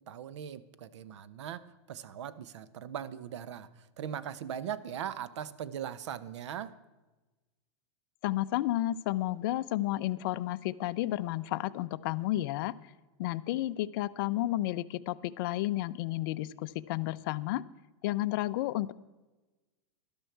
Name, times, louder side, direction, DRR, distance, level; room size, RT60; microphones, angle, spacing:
voice 1, 0.0-6.7, right 9 dB, 75° right, 15 dB, 0.8 m, -40 dB
voice 2, 8.2-12.7 13.2-17.6 18.0-18.9, left 15 dB, 50° left, 13 dB, 0.5 m, -32 dB
12.5 x 12.0 x 4.6 m, 1.2 s
supercardioid pair, 150°, 15 cm